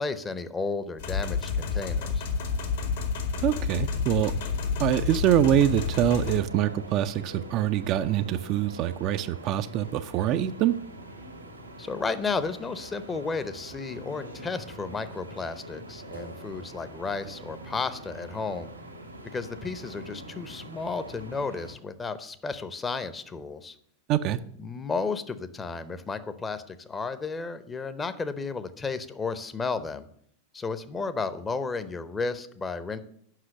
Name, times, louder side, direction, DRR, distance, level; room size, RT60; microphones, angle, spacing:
voice 1, 0.0-2.2 11.8-18.7 19.3-23.7 24.6-30.1 30.5-33.0, left 4 dB, 15° left, 12 dB, 0.7 m, -33 dB
sound 1, 1.0-6.4, left 5 dB, 60° left, 1.4 m, -29 dB
voice 2, 3.4-4.3 4.8-10.8 24.1-24.4, right 11 dB, 40° right, 10 dB, 0.4 m, -24 dB
sound 2, 5.6-21.7, right 1 dB, 85° right, 1.5 m, -44 dB
7.5 x 5.7 x 7.7 m, 0.68 s
figure-of-eight pair, 90°, 0 cm